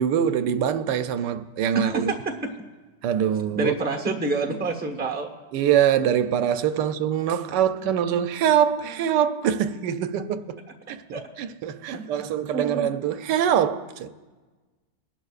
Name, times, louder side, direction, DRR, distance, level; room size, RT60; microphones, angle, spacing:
voice 1, 0.0-2.1 3.0-3.7 5.5-10.6 10.9-14.1, right 9 dB, 80° right, 1.2 m, -24 dB
voice 2, 1.7-2.5 3.5-5.3 11.1-11.2 11.9-12.2 12.5-12.9, right 3 dB, 5° right, 0.8 m, -28 dB
21.5 x 11.0 x 2.4 m
omnidirectional pair, 1.9 m